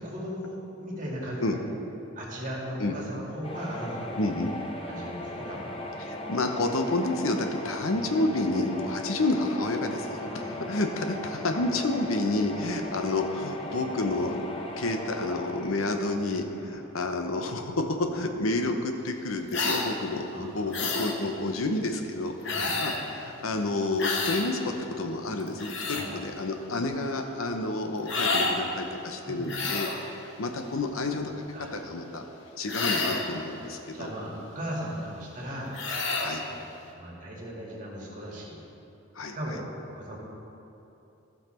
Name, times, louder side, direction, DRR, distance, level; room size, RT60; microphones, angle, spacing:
voice 1, 0.0-1.6 2.2-4.4 4.8-5.7 10.3-10.5 20.3-20.9 22.4-22.7 25.9-26.1 29.2-29.6 31.5-31.7 33.6-35.7 36.4-36.6 37.0-38.6 39.3-40.2, equal, 40° right, -4 dB, 2.1 m, -37 dB
sound 1, 3.4-17.3, left 1 dB, 25° left, 0.8 m, -38 dB
voice 2, 4.2-4.5 6.0-10.3 10.7-14.5 14.8-22.3 22.6-31.3 31.6-32.2 32.6-34.1 36.2-36.4 39.1-39.4, left 2 dB, 85° left, 5 dB, 0.8 m, -29 dB
sound 2, 19.5-19.9 20.7-21.2 22.4-23.0 24.0-24.5 25.4-26.1 28.1-28.6 29.5-30.0 32.7-33.3 35.7-36.3, left 3 dB, 60° left, 1.0 m, -29 dB
15.0 x 5.8 x 4.4 m, 2.9 s
head